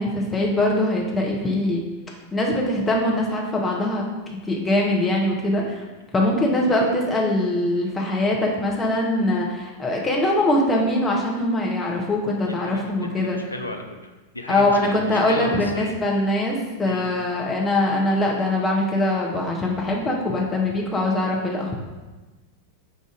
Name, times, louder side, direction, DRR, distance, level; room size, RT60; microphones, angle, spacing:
voice 1, 0.0-1.8 2.3-4.0 4.5-5.8 6.1-13.4 14.5-21.8, left 1 dB, 15° left, -2 dB, 0.8 m, -22 dB
voice 2, 12.5-16.0 16.9-17.1, left 2 dB, 85° left, 4 dB, 0.4 m, -34 dB
4.9 x 2.6 x 3.7 m, 1.2 s
figure-of-eight pair, 90°, 0 cm